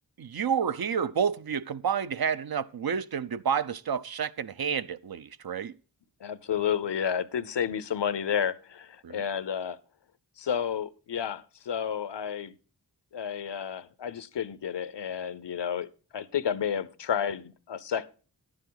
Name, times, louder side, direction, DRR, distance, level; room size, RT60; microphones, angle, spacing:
voice 1, 0.2-5.7 9.0-9.2, right 7 dB, 60° right, 0.6 m, -29 dB
voice 2, 6.2-9.8 10.4-12.5 13.1-18.1, left 8 dB, 80° left, 0.7 m, -31 dB
10.5 x 9.8 x 3.9 m
cardioid pair, 40°, 42 cm